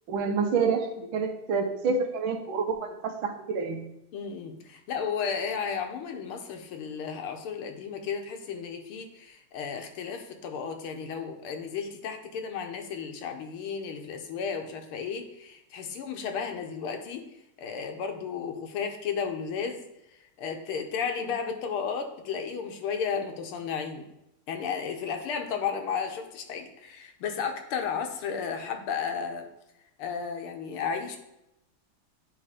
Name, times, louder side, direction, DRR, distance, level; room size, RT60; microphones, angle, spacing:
voice 1, 0.1-3.9, right 5 dB, 70° right, 5 dB, 1.5 m, -28 dB
voice 2, 4.1-17.3 17.6-19.8 20.4-24.1 24.5-29.5 30.0-31.2, left 6 dB, 75° left, 5 dB, 1.7 m, -33 dB
9.7 x 3.2 x 5.0 m, 0.86 s
omnidirectional pair, 2.4 m